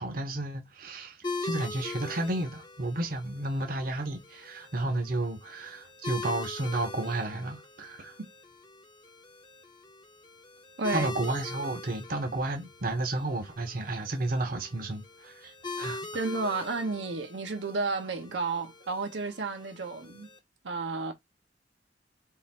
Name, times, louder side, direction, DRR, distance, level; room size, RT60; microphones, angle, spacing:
voice 1, 0.0-8.2 10.9-16.1, right 2 dB, 50° right, 0.8 m, -32 dB
sound 1, 1.2-20.4, left 3 dB, 25° left, 0.7 m, -42 dB
voice 2, 16.1-20.3 20.6-21.1, right 3 dB, 85° right, 0.9 m, -32 dB
3.8 x 2.5 x 4.2 m
head